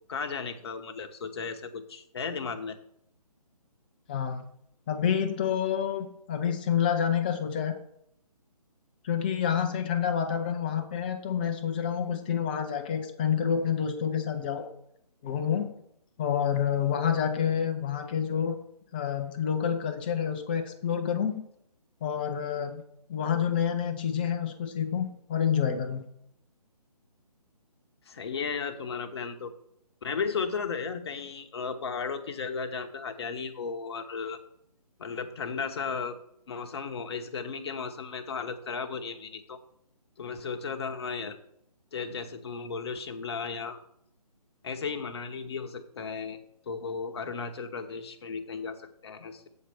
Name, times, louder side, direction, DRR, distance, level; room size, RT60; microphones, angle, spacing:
voice 1, 0.1-2.8 28.1-29.5 30.0-34.4 35.0-36.2 36.5-39.6 40.2-41.4 41.9-43.8 44.6-49.5, left 5 dB, 40° left, 7 dB, 0.9 m, -35 dB
voice 2, 4.1-4.4 4.9-7.8 9.0-14.7 15.2-15.7 16.2-18.6 18.9-21.4 22.0-22.8 23.1-26.0, left 8 dB, 15° left, 7 dB, 0.4 m, -28 dB
8.2 x 4.5 x 6.8 m, 0.72 s
figure-of-eight pair, 145°, 20 cm